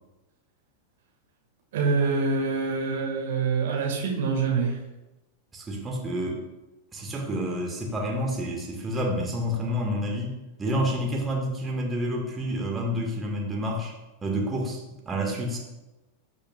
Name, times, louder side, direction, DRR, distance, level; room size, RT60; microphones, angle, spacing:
voice 1, 1.7-4.8, right 4 dB, 55° right, -1 dB, 1.8 m, -25 dB
voice 2, 5.5-6.4 6.9-13.9 14.2-15.6, equal, 15° right, 0 dB, 1.7 m, -29 dB
15.5 x 5.4 x 2.4 m, 1.0 s
figure-of-eight pair, 90°, 0 cm